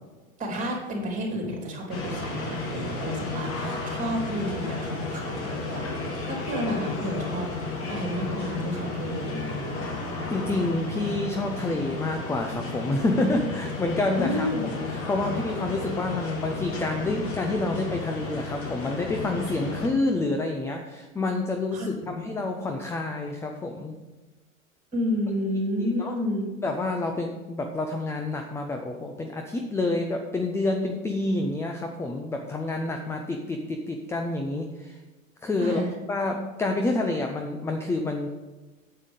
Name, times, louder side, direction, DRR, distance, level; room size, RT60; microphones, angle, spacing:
voice 1, 0.4-9.8 14.1-14.6 21.7-22.1 24.9-26.5 35.6-35.9, equal, 20° right, 0 dB, 3.4 m, -31 dB
sound 1, 1.9-19.9, left 3 dB, 30° left, 2.1 m, -33 dB
voice 2, 10.3-14.5 14.9-24.0 25.8-26.1 26.6-35.0 35.4-35.8 36.1-38.3, left 2 dB, 5° left, 4 dB, 0.5 m, -28 dB
8.7 x 7.8 x 5.1 m, 1.2 s
hypercardioid pair, 100°, 42 cm